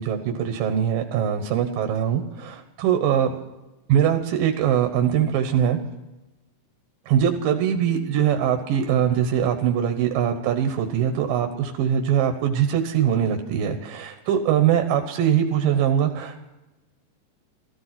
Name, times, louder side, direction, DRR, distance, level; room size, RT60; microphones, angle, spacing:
voice 1, 0.0-3.3 3.9-5.8 7.1-16.5, right 9 dB, 85° right, 5 dB, 2.8 m, -22 dB
15.0 x 14.0 x 5.9 m, 1.0 s
omnidirectional pair, 3.9 m